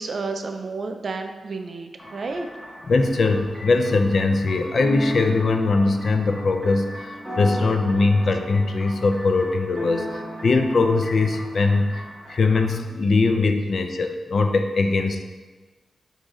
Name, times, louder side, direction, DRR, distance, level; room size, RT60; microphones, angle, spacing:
voice 1, 0.0-2.5, right 3 dB, 50° right, 5 dB, 0.3 m, -31 dB
sound 1, 2.0-12.6, equal, ahead, 1.0 m, -35 dB
voice 2, 2.8-7.1 7.4-12.0 12.3-15.2, left 3 dB, 55° left, 6 dB, 0.3 m, -21 dB
4.7 x 2.7 x 3.6 m, 1.3 s
wide cardioid pair, 135°, 0 cm